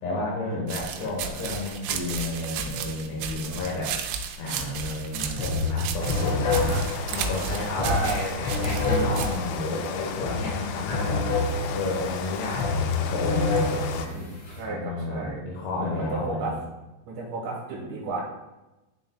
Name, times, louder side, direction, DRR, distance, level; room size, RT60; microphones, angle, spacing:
voice 1, 0.0-4.0 4.4-11.3 11.7-14.1 14.7-16.6, left 2 dB, 75° left, -3 dB, 3.0 m, -31 dB
sound 1, 0.7-9.4, right 6 dB, 90° right, 2.9 m, -33 dB
sound 2, 5.0-5.1 5.4-14.6, left 3 dB, 55° left, 2.1 m, -28 dB
Rain, 6.0-14.1, left 7 dB, 90° left, 2.9 m, -35 dB
voice 2, 7.8-8.4 14.0-15.4 15.8-16.6 17.1-18.2, right 3 dB, 75° right, -3 dB, 2.0 m, -33 dB
11.5 x 3.9 x 2.2 m, 1.0 s
omnidirectional pair, 5.1 m